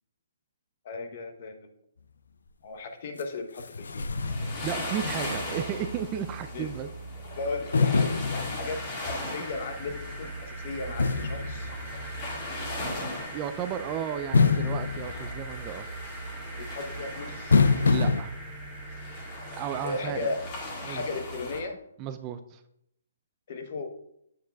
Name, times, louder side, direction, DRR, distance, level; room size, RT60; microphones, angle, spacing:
voice 1, 0.8-1.7 2.6-4.1 6.5-6.7 7.3-11.7 16.6-17.6 19.8-20.4 20.8-21.8 23.5-23.9, left 3 dB, 45° left, 6 dB, 0.9 m, -36 dB
sound 1, 3.2-3.3 3.6-5.6 5.9-6.0 7.7-9.1 11.0-12.4 14.3-15.9 17.5-18.2, left 4 dB, 85° left, 0.5 m, -26 dB
sound 2, 4.1-21.6, equal, 25° left, 1.9 m, -38 dB
voice 2, 4.6-6.9 13.2-15.9 17.9-18.3 19.6-20.3 20.8-21.0 22.0-22.6, right 9 dB, 25° right, 9 dB, 0.3 m, -34 dB
sound 3, 8.6-20.5, equal, ahead, 1.0 m, -44 dB
8.8 x 7.7 x 2.3 m, 0.78 s
hypercardioid pair, 160°, 0 cm